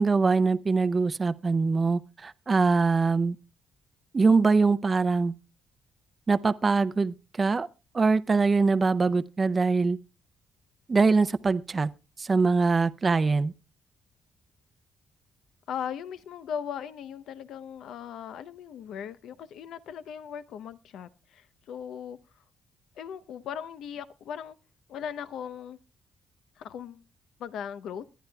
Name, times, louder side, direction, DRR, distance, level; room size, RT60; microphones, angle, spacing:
voice 1, 0.0-3.4 4.1-5.3 6.3-7.7 7.9-10.0 10.9-11.9 12.2-13.5, right 4 dB, 30° right, 0.5 m, -23 dB
voice 2, 15.7-22.2 23.0-24.6 24.9-25.8 26.6-27.0 27.4-28.0, left 8 dB, 75° left, 0.7 m, -38 dB
23.0 x 10.5 x 2.3 m
cardioid pair, 90°, 0 cm